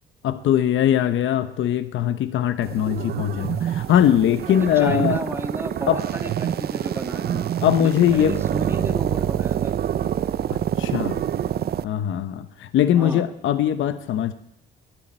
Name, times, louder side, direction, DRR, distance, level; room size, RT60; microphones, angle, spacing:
voice 1, 0.2-5.2 5.9-6.0 7.6-8.4 10.8-11.2 11.8-14.3, left 10 dB, 75° left, 11 dB, 0.9 m, -21 dB
sound 1, 2.6-11.8, right 10 dB, 50° right, 0.5 m, -26 dB
voice 2, 4.6-7.5 7.8-9.7 13.0-13.2, right 1 dB, 10° right, 4 dB, 1.9 m, -32 dB
21.0 x 11.0 x 4.4 m, 0.83 s
cardioid pair, 90°, 20 cm